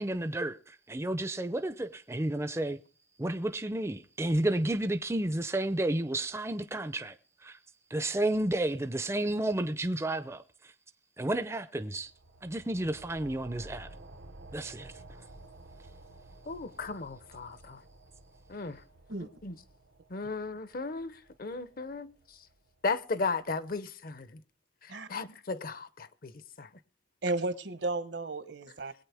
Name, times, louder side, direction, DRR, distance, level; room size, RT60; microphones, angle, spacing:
voice 1, 0.0-2.8 3.2-7.2 7.4-7.6 7.9-10.7 11.2-12.1 12.4-13.9 14.5-15.0, right 1 dB, 15° right, 0.5 m, -31 dB
sound 1, 11.9-23.1, right 2 dB, 90° right, 1.0 m, -53 dB
voice 2, 16.5-17.8 18.5-18.8 19.4-19.6 20.1-22.5 22.8-24.4 24.8-26.7, left 4 dB, 50° left, 0.7 m, -36 dB
voice 3, 27.2-28.9, right 2 dB, 65° right, 1.1 m, -33 dB
22.0 x 8.8 x 3.5 m
head